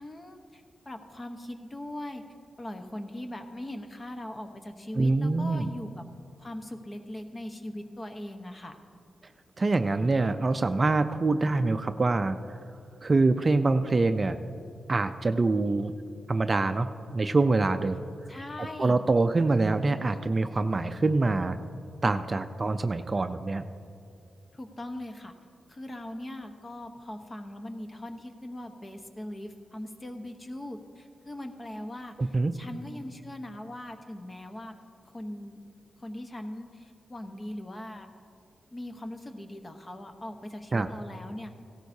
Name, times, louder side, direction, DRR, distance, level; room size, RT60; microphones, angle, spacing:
voice 1, 0.0-2.2 2.6-6.0 6.4-8.8 18.3-19.0 24.5-25.3 25.7-34.8 35.0-35.6 36.0-38.1 38.7-41.5, left 1 dB, 30° left, 6 dB, 1.0 m, -40 dB
voice 2, 5.0-5.7 9.6-12.4 13.0-14.4 14.9-15.9 16.3-18.1 18.8-21.6 22.0-23.6 32.2-32.5 40.7-40.9, right 3 dB, 35° right, 9 dB, 0.4 m, -25 dB
16.5 x 13.0 x 2.7 m, 2.4 s
cardioid pair, 75°, 0 cm